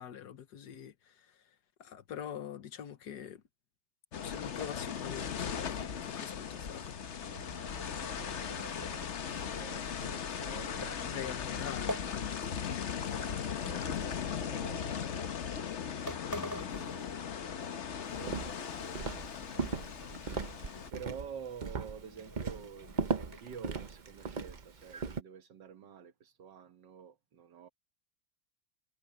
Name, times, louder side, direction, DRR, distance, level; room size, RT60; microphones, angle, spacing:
voice 1, 0.0-1.4 1.8-3.4 4.2-7.0 10.8-12.9 16.0-16.2, left 8 dB, 70° left, 1.6 m, -45 dB
sound 1, 4.1-20.9, left 7 dB, 50° left, 1.1 m, -38 dB
sound 2, 6.7-12.8 13.0-14.5 15.2-15.4 15.8-15.9 16.1-17.7 18.0-19.3 19.5-20.1 20.5-20.6 20.9-23.4, left 1 dB, 10° left, 3.8 m, -47 dB
voice 2, 8.2-11.2 13.1-15.4 16.2-17.3 18.0-19.2 20.9-27.7, right 7 dB, 85° right, 2.0 m, -49 dB
Walk footsteps, 18.2-25.2, right 4 dB, 35° right, 0.7 m, -38 dB
omnidirectional pair, 1.9 m